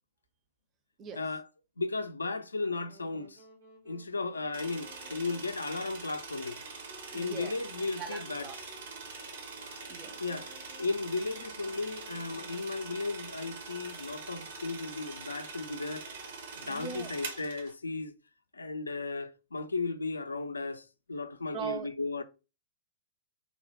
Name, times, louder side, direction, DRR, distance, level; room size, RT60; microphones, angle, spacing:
voice 1, 1.2-1.5 1.8-3.4 3.9-6.6 7.1-8.5 10.2-10.5 10.8-16.1 16.5-18.1 18.5-22.2, left 3 dB, 80° left, 0.3 m, -35 dB
Wind instrument woodwind instrument, 2.6-13.5, equal, 75° right, 1.6 m, -58 dB
sound 1, 4.5-17.7, right 4 dB, 60° right, 0.7 m, -44 dB
voice 2, 7.1-7.6 8.0-8.6 9.9-10.2 16.6-17.1 21.5-21.9, right 7 dB, 25° right, 0.5 m, -40 dB
4.1 x 2.0 x 2.8 m
figure-of-eight pair, 105°, 0 cm